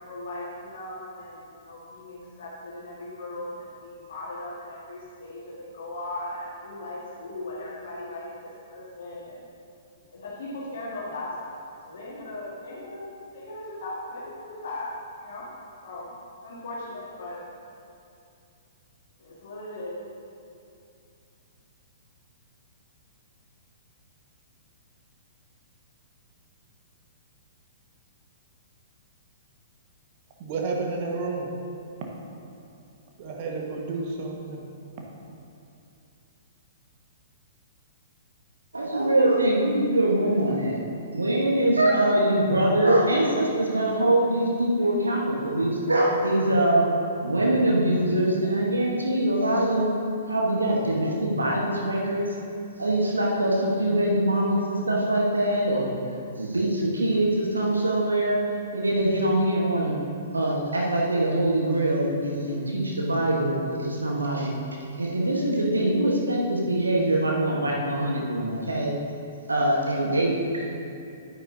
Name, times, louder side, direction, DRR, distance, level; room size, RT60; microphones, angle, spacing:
voice 1, 0.1-9.4 10.1-14.9 15.2-15.5 15.8-16.1 16.4-17.4 19.2-20.0, left 2 dB, 55° left, -6 dB, 1.7 m, -38 dB
voice 2, 30.4-31.5 33.2-34.6, right 3 dB, 40° right, 0 dB, 1.4 m, -31 dB
voice 3, 38.7-40.8 41.1-46.9 47.2-49.9 50.3-52.3 52.8-55.9 56.4-58.4 58.7-59.9 60.3-64.5 65.0-68.9 69.5-70.7, right 1 dB, 80° right, -2 dB, 1.2 m, -23 dB
10.0 x 9.5 x 2.7 m, 2.6 s
figure-of-eight pair, 115°, 0 cm